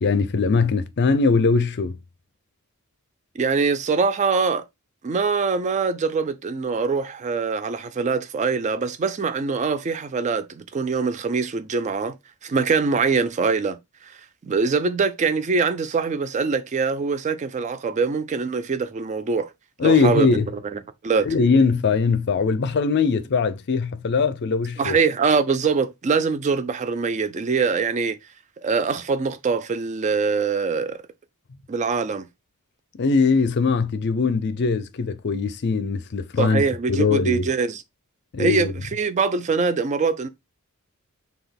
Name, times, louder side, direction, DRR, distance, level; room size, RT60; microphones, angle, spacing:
voice 1, 0.0-2.0 19.8-20.5 21.2-25.0 33.0-36.6 36.9-37.5 38.3-38.7, left 4 dB, 50° left, 0.5 m, -21 dB
voice 2, 3.4-4.6 5.0-12.2 12.4-13.8 14.0-14.1 14.5-19.5 19.8-20.3 20.7-21.3 24.8-28.2 28.6-31.0 31.7-32.3 36.4-37.8 38.4-40.3, right 4 dB, 35° right, 0.4 m, -23 dB
5.8 x 2.3 x 3.4 m
head